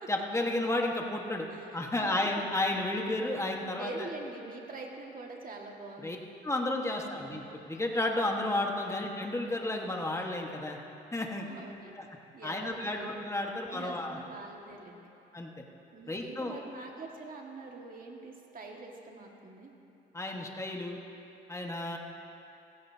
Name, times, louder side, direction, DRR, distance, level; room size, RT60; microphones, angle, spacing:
voice 1, 0.1-1.5 1.7-4.1 6.0-6.2 6.4-10.8 11.1-11.5 12.0-12.1 12.4-14.2 15.3-15.5 16.1-16.6 20.1-21.0 21.5-22.0, left 2 dB, 15° left, 1 dB, 1.5 m, -32 dB
voice 2, 1.5-2.3 3.8-6.2 6.9-7.3 8.9-9.0 11.5-12.0 12.3-13.2 13.7-15.1 15.9-19.7, right 3 dB, 45° right, 0 dB, 1.9 m, -44 dB
16.5 x 15.5 x 2.8 m, 2.8 s
cardioid pair, 90°, 20 cm